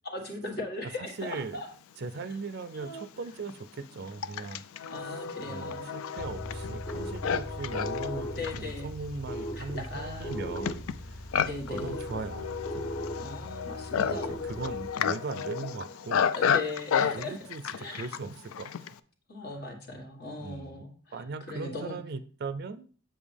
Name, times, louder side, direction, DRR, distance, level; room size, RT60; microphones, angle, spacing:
voice 1, 0.0-1.7 2.7-3.1 4.9-5.9 8.4-8.9 9.5-10.4 11.4-12.0 13.2-14.6 16.3-17.4 17.7-18.1 19.3-22.0, left 2 dB, 50° left, 3 dB, 1.7 m, -39 dB
voice 2, 0.8-1.6 2.0-4.6 5.0-11.3 11.7-12.8 13.9-16.3 17.1-17.6 17.9-19.0 20.4-22.9, right 4 dB, 50° right, 12 dB, 0.4 m, -39 dB
Livestock farm animals working animals, 2.2-2.3 3.1-19.0, left 7 dB, 85° left, 0.4 m, -32 dB
sound 1, 6.2-14.9, equal, 15° left, 0.4 m, -39 dB
7.5 x 7.3 x 3.4 m, 0.42 s
head